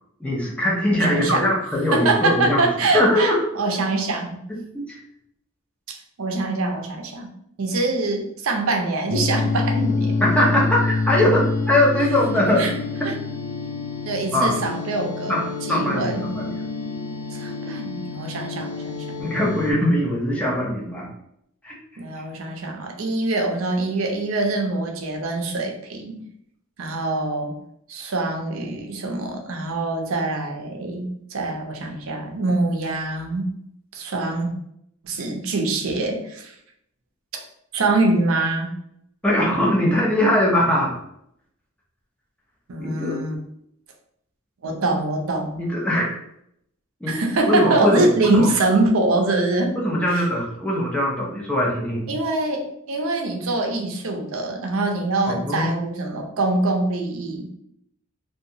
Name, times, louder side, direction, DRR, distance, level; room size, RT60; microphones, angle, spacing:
voice 1, 0.2-2.6 2.9-3.4 4.7-5.0 10.2-12.7 14.3-14.6 15.3-16.5 19.2-21.1 21.6-21.7 39.2-40.9 42.8-43.2 45.6-46.2 47.0-47.2 47.5-48.5 49.8-52.1 55.3-55.7, left 1 dB, 5° left, -4 dB, 0.6 m, -21 dB
voice 2, 0.9-1.5 1.9-4.4 6.2-7.3 7.6-10.2 12.6-12.7 13.0-13.1 14.0-15.4 15.7-16.3 17.3-19.2 22.0-26.2 26.8-27.6 27.9-33.5 33.9-34.5 35.0-36.5 37.3-37.4 37.7-38.7 42.7-43.4 44.6-45.6 47.1-49.8 50.1-50.2 52.1-57.5, right 2 dB, 90° right, 2 dB, 0.6 m, -24 dB
sound 1, 9.1-19.7, left 3 dB, 90° left, 0.4 m, -27 dB
2.7 x 2.3 x 2.7 m, 0.73 s
head